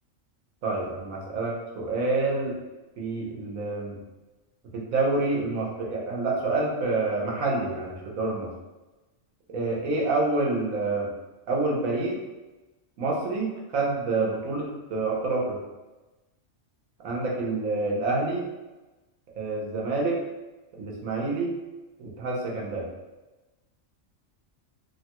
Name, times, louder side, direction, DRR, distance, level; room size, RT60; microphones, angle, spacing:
voice 1, 0.6-2.6 3.0-4.0 4.7-8.5 9.5-11.1 11.5-12.2 13.0-15.6 17.0-18.4 19.4-20.2 20.8-21.6 22.0-22.9, right 3 dB, 85° right, -2 dB, 1.2 m, -27 dB
3.2 x 2.1 x 2.9 m, 1.1 s
omnidirectional pair, 1.4 m